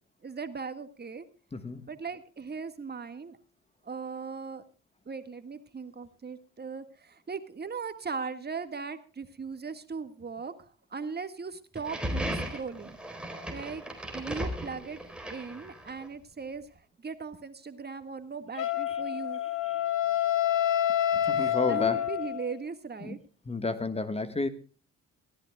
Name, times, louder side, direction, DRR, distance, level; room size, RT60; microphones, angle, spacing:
voice 1, 0.2-1.3 1.9-3.4 3.8-4.6 5.0-13.0 13.5-13.8 14.1-15.0 15.3-19.4 21.1-23.2, right 5 dB, 35° right, 10 dB, 1.8 m, -39 dB
voice 2, 1.5-1.8 21.2-22.0 23.0-23.2 23.5-24.5, left 3 dB, 20° left, 11 dB, 1.4 m, -31 dB
sound 1, 11.7-16.1, equal, 5° right, 4.2 m, -36 dB
Wind instrument woodwind instrument, 18.6-22.6, left 11 dB, 90° left, 1.5 m, -28 dB
23.0 x 15.5 x 2.3 m, 0.36 s
cardioid pair, 90°, 30 cm